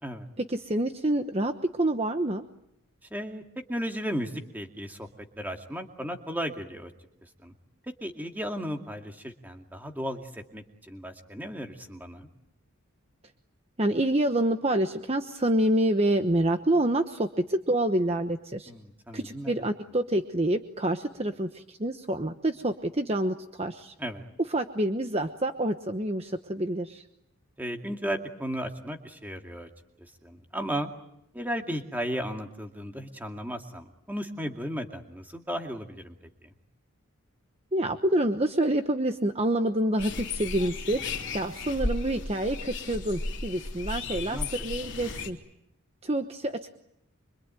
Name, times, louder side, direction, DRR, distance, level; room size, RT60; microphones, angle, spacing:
voice 1, 0.5-2.4 13.8-18.7 19.1-23.9 24.5-27.0 37.7-41.0 41.3-45.4 46.0-46.8, right 1 dB, 25° right, 7 dB, 1.1 m, -27 dB
voice 2, 3.1-3.4 3.7-5.1 5.4-6.9 7.2-7.5 7.8-12.3 18.7-19.6 24.0-24.2 27.6-29.7 30.0-30.9 31.3-36.2 36.4-36.5 44.0-44.5 44.8-44.9, equal, 10° right, 4 dB, 2.3 m, -35 dB
sound 1, 40.0-45.3, left 3 dB, 55° left, 3.2 m, -34 dB
25.5 x 25.5 x 9.2 m, 0.81 s
head